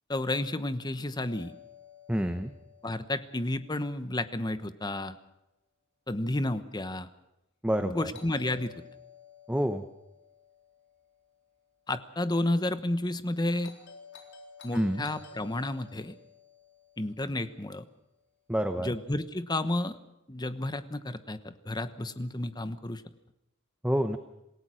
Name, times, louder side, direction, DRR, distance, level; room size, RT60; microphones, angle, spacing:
voice 1, 0.1-1.5 2.8-5.1 6.1-7.1 7.8-8.7 11.9-13.7 14.6-16.1 17.0-17.9 18.8-20.0 20.3-23.0, left 1 dB, 20° left, 11 dB, 1.1 m, -31 dB
Doorbell, 1.3-5.3 8.1-12.4 13.6-18.0, left 5 dB, 60° left, 4.0 m, -54 dB
voice 2, 2.1-2.5 7.6-8.1 9.5-9.8 14.7-15.1 18.5-18.9 23.8-24.2, equal, 5° right, 8 dB, 0.9 m, -28 dB
27.5 x 17.0 x 6.4 m, 0.90 s
head